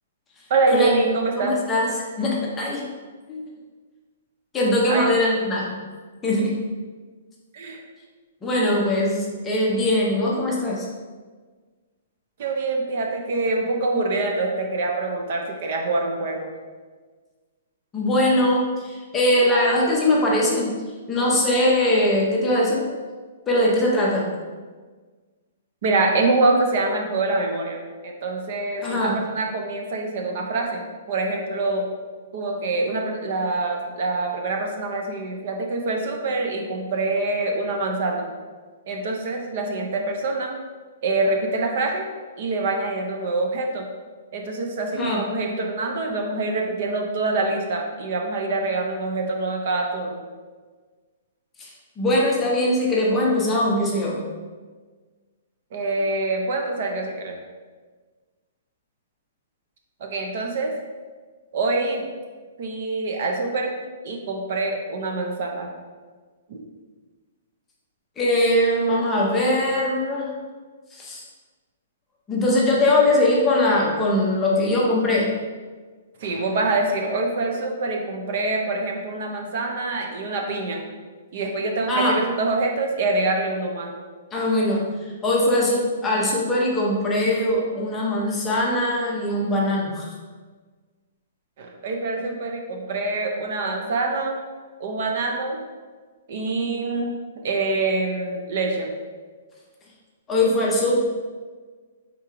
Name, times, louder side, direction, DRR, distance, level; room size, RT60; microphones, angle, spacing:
voice 1, 0.5-1.6 4.9-5.1 7.5-7.8 12.4-16.5 25.8-27.8 28.0-31.9 32.3-38.3 38.9-40.5 41.0-42.1 42.4-43.9 44.3-50.2 55.7-57.4 60.0-60.7 61.5-62.1 62.6-65.7 66.5-66.6 76.2-80.8 81.3-83.9 91.6-94.4 94.8-95.6 96.3-98.9, right 3 dB, 40° right, 2 dB, 0.5 m, -25 dB
voice 2, 1.4-1.9 2.2-2.8 3.3-3.4 4.5-5.8 6.2-6.5 8.4-10.9 17.9-20.7 21.1-22.8 23.5-24.3 28.8-29.1 44.9-45.2 51.6-51.7 52.0-54.2 68.2-70.3 71.0-71.2 72.3-75.3 81.9-82.2 84.3-84.8 85.2-90.1 100.3-101.0, left 1 dB, 10° left, -4 dB, 0.6 m, -21 dB
3.6 x 2.9 x 4.8 m, 1.4 s
hypercardioid pair, 175°, 0 cm